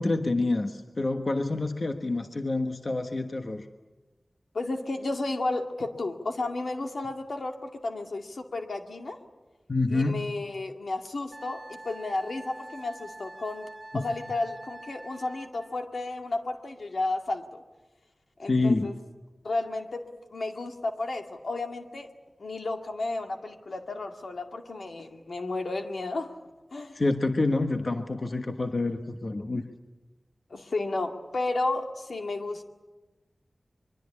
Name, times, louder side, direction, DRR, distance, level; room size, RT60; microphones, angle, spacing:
voice 1, 0.0-3.7 9.7-10.2 13.9-14.0 18.5-18.9 26.9-29.6, left 2 dB, 55° left, 6 dB, 1.3 m, -27 dB
voice 2, 4.5-9.2 9.9-13.7 13.9-17.5 18.4-18.9 19.4-20.1 20.3-22.1 22.4-26.3 26.7-27.0 30.5-32.6, left 2 dB, 80° left, 4 dB, 2.2 m, -32 dB
Wind instrument woodwind instrument, 11.3-15.8, right 1 dB, 20° right, 1.8 m, -45 dB
24.5 x 23.5 x 8.6 m, 1.2 s
wide cardioid pair, 60°, 0 cm